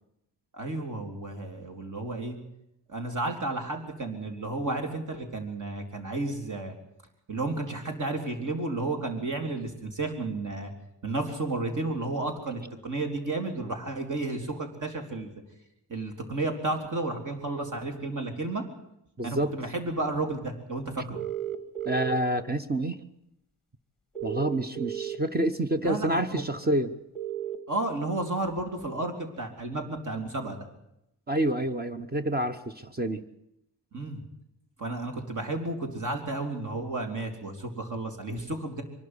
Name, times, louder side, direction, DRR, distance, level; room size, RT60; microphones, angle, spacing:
voice 1, 0.5-2.4 2.9-6.8 7.3-10.7 11.0-15.3 15.9-18.6 19.2-21.2 25.8-26.4 27.7-30.6 33.9-34.2 34.8-38.8, right 2 dB, 45° right, 5 dB, 3.8 m, -32 dB
voice 2, 19.2-19.6 21.9-23.0 24.2-26.9 31.3-33.2, right 1 dB, 20° right, 10 dB, 1.0 m, -28 dB
sound 1, 21.2-22.2 24.2-25.2 27.2-27.6, right 12 dB, ahead, 2.1 m, -33 dB
23.5 x 12.0 x 9.8 m, 0.81 s
wide cardioid pair, 135°, 41 cm